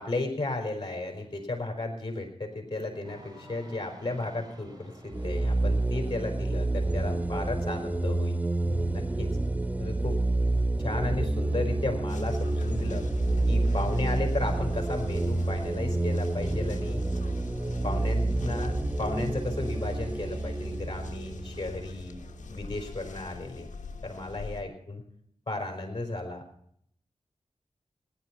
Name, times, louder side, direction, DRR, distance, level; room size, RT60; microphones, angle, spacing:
voice 1, 0.0-8.4 8.9-9.3 9.8-10.2 10.8-13.1 13.5-17.0 17.8-22.2 22.5-23.7 24.0-25.0 25.5-26.4, left 2 dB, 35° left, 3 dB, 4.6 m, -34 dB
sound 1, 3.0-8.3, equal, 30° right, 3.9 m, -52 dB
sound 2, 5.1-22.5, right 2 dB, 10° right, 0.8 m, -29 dB
sound 3, 12.1-24.6, left 4 dB, 90° left, 1.2 m, -44 dB
17.0 x 11.0 x 5.8 m, 0.67 s
cardioid pair, 55°, 12 cm